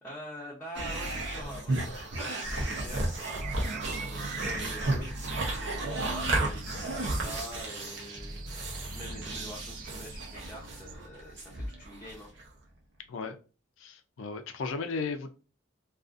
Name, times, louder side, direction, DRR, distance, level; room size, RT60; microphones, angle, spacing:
voice 1, 0.0-5.2 5.9-8.4 8.9-12.3, equal, 10° left, 0.6 m, -45 dB
sound 1, 0.7-12.5, right 2 dB, 65° right, 0.7 m, -33 dB
sound 2, 1.7-10.9, right 7 dB, 45° right, 0.3 m, -48 dB
voice 2, 13.8-15.3, left 4 dB, 85° left, 0.4 m, -35 dB
2.5 x 2.4 x 2.4 m
head